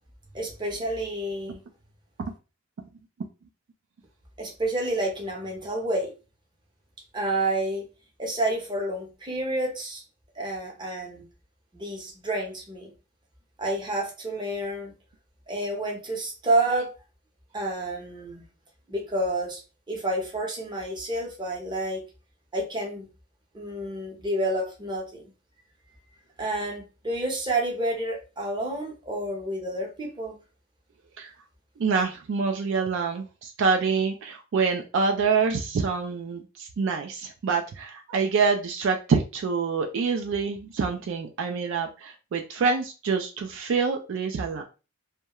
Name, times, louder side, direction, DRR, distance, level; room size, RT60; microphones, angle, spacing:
voice 1, 0.3-1.6 4.4-6.1 7.1-7.8 8.2-10.0 10.4-11.3 11.7-12.9 13.6-14.9 15.5-16.9 17.5-18.4 18.9-19.6 19.9-22.0 22.5-23.1 23.5-25.3 26.4-30.4, right 1 dB, 20° right, 0 dB, 0.7 m, -29 dB
voice 2, 31.8-44.6, right 5 dB, 60° right, 3 dB, 0.3 m, -26 dB
2.2 x 2.1 x 2.9 m, 0.31 s
head